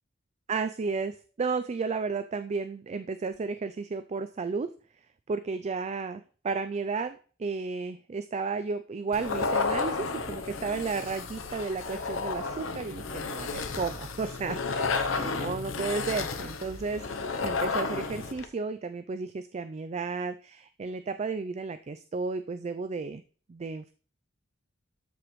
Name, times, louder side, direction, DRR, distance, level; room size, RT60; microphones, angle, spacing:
voice 1, 0.5-4.7 5.3-17.0 17.4-23.2 23.5-23.9, right 4 dB, 35° right, 11 dB, 0.4 m, -33 dB
sound 1, 9.1-18.5, left 4 dB, 70° left, 0.8 m, -32 dB
13.0 x 5.0 x 3.1 m, 0.40 s
head